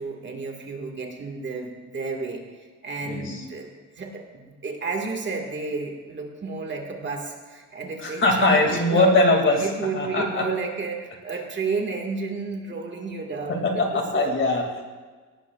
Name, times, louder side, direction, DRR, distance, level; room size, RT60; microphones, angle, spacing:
voice 1, 0.0-2.4 2.8-3.7 4.0-9.2 9.6-14.4, right 4 dB, 35° right, 1 dB, 1.7 m, -31 dB
voice 2, 3.0-3.4 8.0-9.7 9.9-10.5 13.5-14.8, left 2 dB, 35° left, 2 dB, 2.3 m, -21 dB
18.5 x 18.5 x 2.3 m, 1.4 s
cardioid pair, 160°, 33 cm